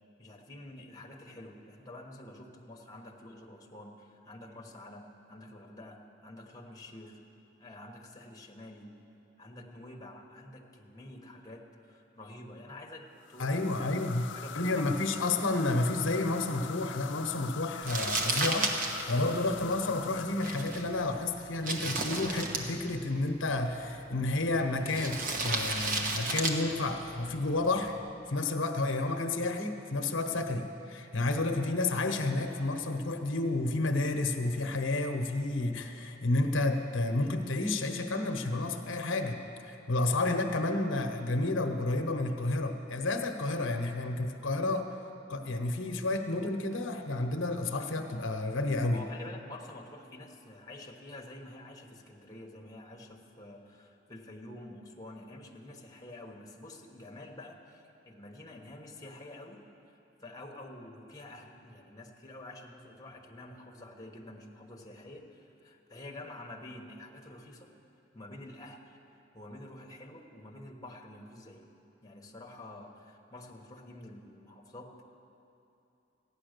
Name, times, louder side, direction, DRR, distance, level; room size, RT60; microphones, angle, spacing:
voice 1, 0.2-7.2 7.6-8.9 9.4-13.9 14.3-15.1 48.9-67.7 68.1-69.0 69.3-71.7 72.0-75.1, left 1 dB, 20° left, 1 dB, 1.2 m, -48 dB
sound 1, 13.2-21.8, left 9 dB, 65° left, 0.4 m, -44 dB
voice 2, 13.4-14.3 14.5-18.7 19.1-27.9 28.3-39.4 39.6-44.9 45.3-49.0, left 2 dB, 85° left, 6 dB, 0.8 m, -30 dB
Crumpling crinkling, 17.8-28.0, right 2 dB, 45° right, 1.1 m, -35 dB
15.0 x 9.7 x 6.6 m, 2.9 s
head